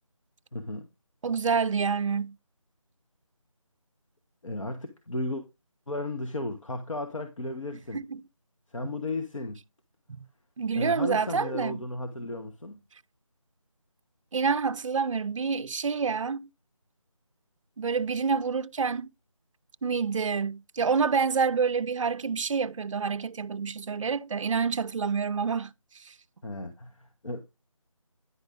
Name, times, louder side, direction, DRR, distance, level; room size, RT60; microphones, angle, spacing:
voice 1, 0.5-0.9 4.4-5.4 5.9-8.0 8.7-9.6 10.7-12.8 26.4-27.4, left 2 dB, 65° left, 1.1 m, -34 dB
voice 2, 1.2-2.4 7.9-8.2 10.2-10.3 10.6-11.8 14.3-16.5 17.8-19.1 19.8-25.7 26.0-26.1, right 5 dB, 65° right, 0.4 m, -27 dB
9.9 x 5.3 x 3.6 m
figure-of-eight pair, 170°, 18 cm